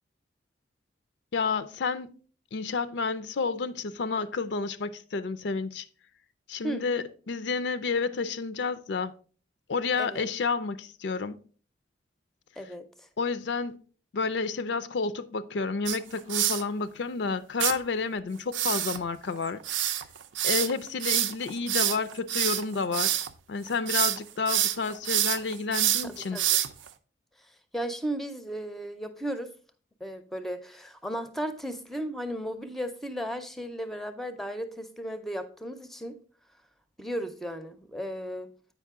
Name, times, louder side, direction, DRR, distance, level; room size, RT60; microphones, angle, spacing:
voice 1, 1.3-2.2 2.5-5.9 6.5-9.1 9.7-11.4 13.2-13.8 14.1-19.6 20.4-26.4, left 4 dB, 70° left, 0.4 m, -30 dB
sound 1, 15.9-16.6 17.6-17.7 18.5-23.3 23.7-24.2 24.5-26.9, right 12 dB, 85° right, 0.5 m, -27 dB
voice 2, 27.7-29.5 30.0-36.2 37.0-38.5, equal, ahead, 0.5 m, -35 dB
8.2 x 5.2 x 3.6 m
head